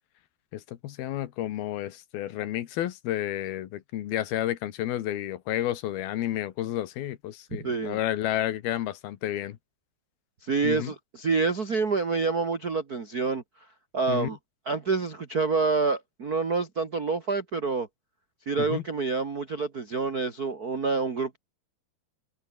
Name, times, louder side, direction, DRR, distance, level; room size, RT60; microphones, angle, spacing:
voice 1, 0.5-9.6 10.6-10.9 14.1-14.3 18.6-18.8, left 13 dB, 75° left, 3.2 m, -31 dB
voice 2, 7.6-8.0 10.4-13.4 13.9-14.4 14.6-17.9 18.5-21.4, right 4 dB, 85° right, 0.8 m, -27 dB
omnidirectional pair, 4.6 m